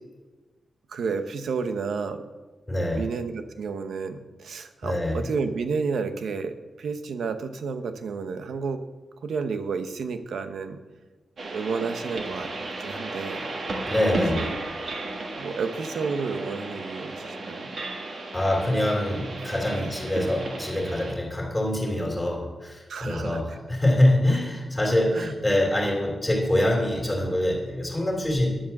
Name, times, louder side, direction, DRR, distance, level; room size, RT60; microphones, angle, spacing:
voice 1, 0.9-2.2 2.8-8.8 9.2-10.8 11.4-12.5 12.8-13.5 14.3-14.5 15.4-17.7 19.7-19.9 22.9-23.4 24.3-24.4 25.1-25.3, right 5 dB, 85° right, 8 dB, 0.9 m, -31 dB
voice 2, 2.7-3.0 4.8-5.2 13.9-14.5 18.3-28.5, left 1 dB, 10° left, -1 dB, 2.8 m, -24 dB
sound 1, 11.4-21.1, right 2 dB, 50° right, 1.5 m, -34 dB
10.0 x 7.4 x 7.1 m, 1.2 s
wide cardioid pair, 170°, 0 cm